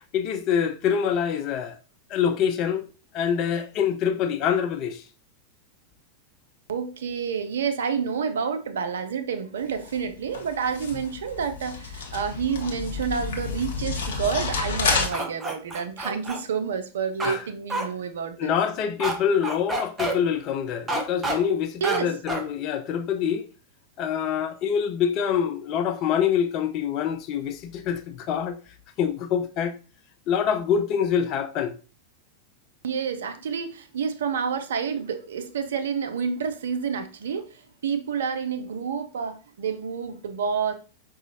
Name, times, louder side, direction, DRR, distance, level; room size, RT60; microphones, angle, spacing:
voice 1, 0.1-1.8 2.1-2.9 3.1-5.0 17.2-17.4 18.4-23.4 24.0-28.6 29.0-29.8 30.3-31.7, left 8 dB, 40° left, 0.4 m, -25 dB
voice 2, 6.7-18.5 21.8-22.1 32.8-40.7, right 6 dB, 60° right, 0.4 m, -29 dB
sound 1, 9.6-15.1, left 4 dB, 60° left, 0.8 m, -30 dB
sound 2, 14.8-16.4 17.2-17.4 17.7-17.8 19.0-19.1 19.4-20.1 20.9-21.4 21.8-22.0 22.3-22.4, right 2 dB, 15° right, 0.6 m, -28 dB
4.8 x 2.4 x 2.7 m
figure-of-eight pair, 90°, 0 cm